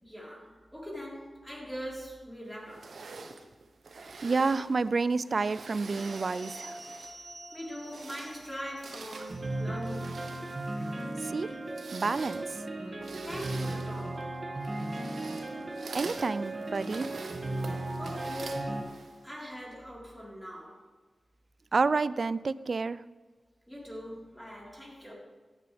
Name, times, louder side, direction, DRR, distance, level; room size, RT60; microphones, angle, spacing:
voice 1, 0.0-3.0 5.9-6.0 7.0-10.3 12.9-13.0 13.2-14.3 18.0-19.0 19.2-20.8 23.7-25.1, equal, 10° left, -4 dB, 4.0 m, -42 dB
sound 1, 2.7-7.3 7.7-19.3, right 4 dB, 80° right, 1.0 m, -47 dB
voice 2, 4.2-6.8 11.2-11.5 11.9-12.4 15.9-17.1 21.7-23.0, right 4 dB, 60° right, 17 dB, 0.4 m, -29 dB
sound 2, 6.0-18.8, right 2 dB, 40° right, 1.9 m, -37 dB
16.0 x 10.5 x 3.4 m, 1.3 s
wide cardioid pair, 75°, 0 cm